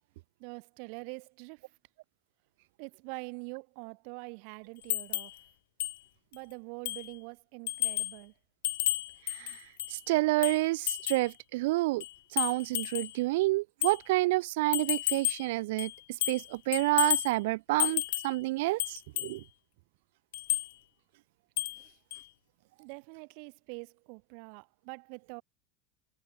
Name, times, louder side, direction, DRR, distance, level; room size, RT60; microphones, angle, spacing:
voice 1, 0.4-1.7 2.8-5.3 6.3-8.3 21.7-22.0 22.8-25.4, right 40 dB or more, 60° right, 2.8 m, -45 dB
sound 1, 4.9-5.4 5.8-6.0 6.3-6.4 6.9-7.1 7.7-8.2 8.6-10.0 10.4-11.3 12.0-13.2 13.8-14.0 14.7-15.5 15.8-16.5 16.7-17.3 17.8-18.4 18.8-19.4 20.3-20.7 21.6-21.8 22.1-22.2, left 16 dB, 90° left, 0.7 m, -32 dB
voice 2, 9.9-12.0 12.3-15.9 16.3-19.4, right 20 dB, 75° right, 0.4 m, -29 dB
supercardioid pair, 155°, 0 cm